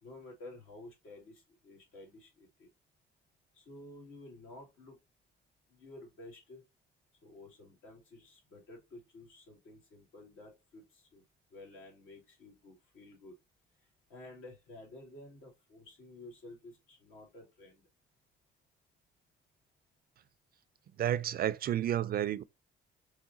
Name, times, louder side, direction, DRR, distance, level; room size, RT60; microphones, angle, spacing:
voice 1, 0.0-2.7 3.5-5.0 5.7-6.6 7.2-11.2 11.5-13.3 14.1-17.8, left 2 dB, 85° left, 2.0 m, -52 dB
voice 2, 21.0-22.4, right 11 dB, 50° right, 0.4 m, -31 dB
4.8 x 2.2 x 3.8 m
cardioid pair, 90°, 20 cm